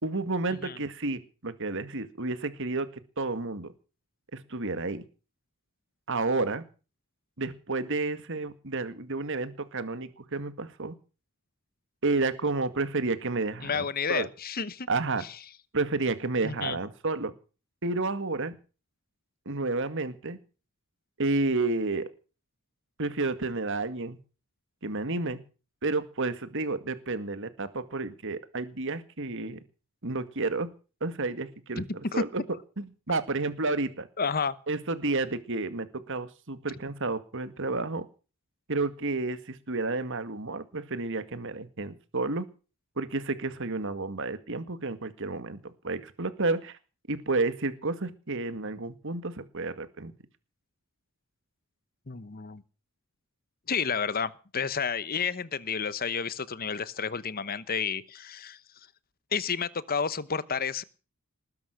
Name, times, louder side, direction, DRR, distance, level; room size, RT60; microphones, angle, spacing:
voice 1, 0.0-2.9 3.2-3.7 4.3-5.0 6.1-6.6 7.4-10.9 12.0-14.3 14.9-15.2 15.7-17.3 17.8-18.6 19.5-20.4 21.2-22.1 23.0-24.2 24.8-25.4 25.8-29.6 30.0-30.7 31.0-31.8 32.1-32.4 32.8-34.1 34.7-38.1 38.7-42.5 43.0-45.6 45.8-46.8 47.1-50.1, right 3 dB, 60° right, 11 dB, 2.0 m, -31 dB
voice 2, 13.6-14.9 15.2-15.4 16.4-16.8 31.8-32.2 34.2-34.5 52.1-52.6 53.7-58.6 59.3-60.8, left 6 dB, 45° left, 17 dB, 1.0 m, -31 dB
20.0 x 11.0 x 6.5 m, 0.37 s
head